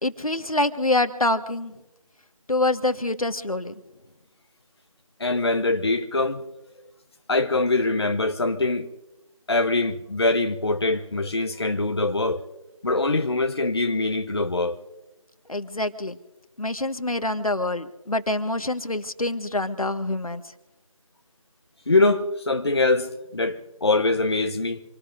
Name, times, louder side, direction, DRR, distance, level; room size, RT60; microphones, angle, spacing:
voice 1, 0.0-1.7 2.5-3.7 15.5-16.2 16.6-20.4, left 2 dB, 85° left, 1.6 m, -26 dB
voice 2, 5.2-6.5 7.3-8.9 9.5-12.4 12.8-14.7 21.9-24.8, left 2 dB, 50° left, 1.0 m, -23 dB
27.0 x 19.0 x 2.6 m
figure-of-eight pair, 170°, 18 cm